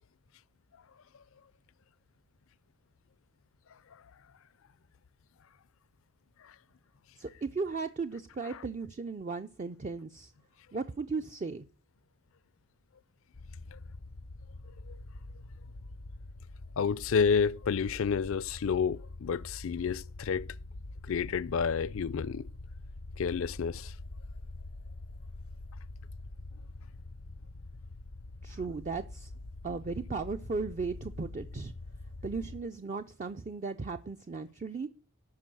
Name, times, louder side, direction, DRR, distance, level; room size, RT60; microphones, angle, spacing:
voice 1, 7.2-10.3 10.7-11.7 28.4-29.3 29.6-31.7 32.2-34.9, right 4 dB, 35° right, 0.4 m, -36 dB
sound 1, 13.3-32.6, left 2 dB, 85° left, 0.7 m, -45 dB
voice 2, 16.8-20.5 21.1-22.5 23.2-23.9, left 6 dB, 65° left, 0.4 m, -30 dB
11.5 x 4.6 x 7.5 m
head